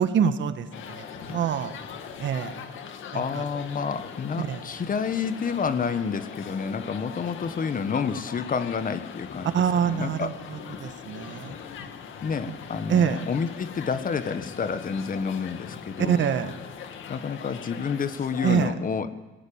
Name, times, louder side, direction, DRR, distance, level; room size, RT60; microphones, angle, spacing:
voice 1, 0.0-1.7 2.2-2.5 3.1-3.4 4.4-4.6 9.5-11.6 12.5-12.6 12.9-13.2 16.0-16.5 18.4-18.7, right 8 dB, 70° right, 9 dB, 1.7 m, -25 dB
sound 1, 0.7-18.7, left 7 dB, 80° left, 2.2 m, -41 dB
voice 2, 3.1-9.5 9.8-10.4 12.2-16.2 17.1-19.1, left 6 dB, 45° left, 11 dB, 1.5 m, -29 dB
19.0 x 17.5 x 8.9 m, 1.1 s
cardioid pair, 90°, 20 cm